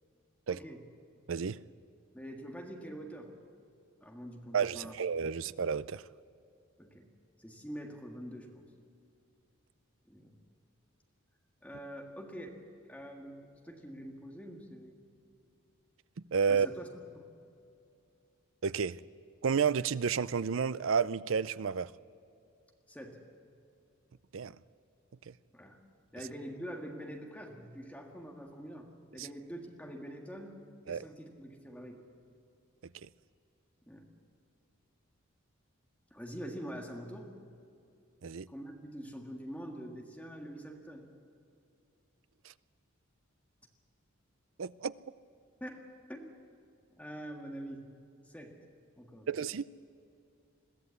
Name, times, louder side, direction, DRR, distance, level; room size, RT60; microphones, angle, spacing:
voice 1, 0.5-0.9 2.1-3.3 4.0-5.0 6.8-7.1 7.4-8.7 10.1-10.4 11.6-12.5 12.8-15.0 16.5-17.3 22.9-23.2 25.5-25.8 26.1-28.9 29.1-30.6 30.8-32.0 33.8-34.1 36.1-37.3 38.5-41.1 45.6-45.8 46.1-46.3 46.9-47.9 48.3-48.5 49.0-49.4, equal, 5° left, 2 dB, 1.8 m, -45 dB
voice 2, 4.5-6.0 16.3-16.7 18.6-19.0 19.4-21.9 24.3-24.6 25.3-25.4 29.2-29.3 30.9-31.0 33.0-33.1 38.2-38.5 44.6-44.9 49.3-49.6, right 6 dB, 65° right, 18 dB, 0.5 m, -31 dB
21.5 x 15.5 x 8.4 m, 2.6 s
head